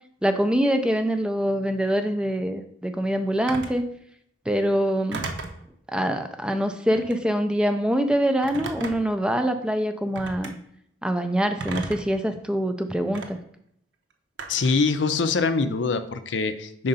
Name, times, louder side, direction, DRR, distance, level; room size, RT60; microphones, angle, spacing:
voice 1, 0.2-3.9 4.5-5.3 5.9-10.5 11.0-13.4, equal, 5° right, 7 dB, 0.4 m, -24 dB
Telephone, 3.5-3.8 5.1-5.6 6.9-7.2 8.4-9.2 10.1-10.5 11.6-12.2 13.1-13.3 14.4-14.8, right 3 dB, 70° right, 0.8 m, -34 dB
voice 2, 14.5-16.9, left 4 dB, 75° left, 10 dB, 0.5 m, -24 dB
5.2 x 3.9 x 5.4 m, 0.70 s
head